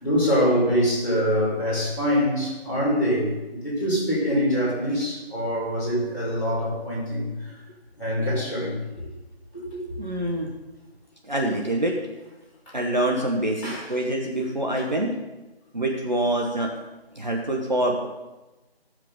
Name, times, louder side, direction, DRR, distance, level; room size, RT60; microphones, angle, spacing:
voice 1, 0.0-3.3 3.6-7.3 8.0-9.1 9.5-9.8 13.6-13.8, equal, ahead, -28 dB, 2.2 m, -24 dB
voice 2, 10.0-10.5 11.2-12.0 12.7-15.1 15.7-16.7 17.1-18.1, right 1 dB, 45° right, 0 dB, 1.1 m, -25 dB
13.5 x 7.5 x 3.9 m, 1.1 s
figure-of-eight pair, 170°, 32 cm